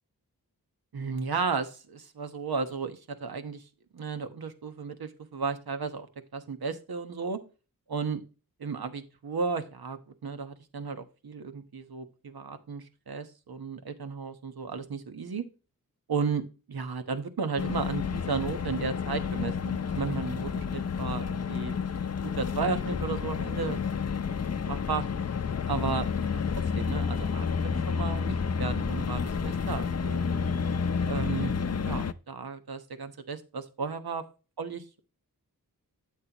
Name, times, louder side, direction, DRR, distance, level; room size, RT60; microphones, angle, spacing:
voice 1, 0.9-3.6 3.9-6.1 6.3-7.4 7.9-8.2 8.6-15.4 16.1-16.4 16.7-21.7 22.2-23.8 24.3-24.4 24.7-25.0 25.7-30.2 31.0-31.5 31.8-34.2 34.6-35.0, right 5 dB, 75° right, 9 dB, 1.2 m, -34 dB
sound 1, 17.6-32.1, left 6 dB, 45° left, 0.6 m, -30 dB
8.4 x 7.7 x 2.9 m, 0.33 s
wide cardioid pair, 65°, 37 cm